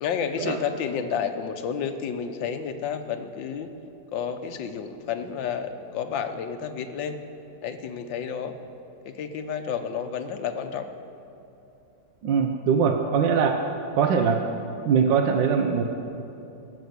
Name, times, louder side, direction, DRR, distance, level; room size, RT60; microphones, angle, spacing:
voice 1, 0.0-3.7 4.1-7.2 7.6-8.5 9.1-10.9, left 7 dB, 90° left, 8 dB, 1.6 m, -30 dB
voice 2, 12.2-13.6 14.0-14.4 14.9-15.8, right 6 dB, 80° right, 4 dB, 1.5 m, -21 dB
18.5 x 7.4 x 7.9 m, 2.8 s
omnidirectional pair, 2.0 m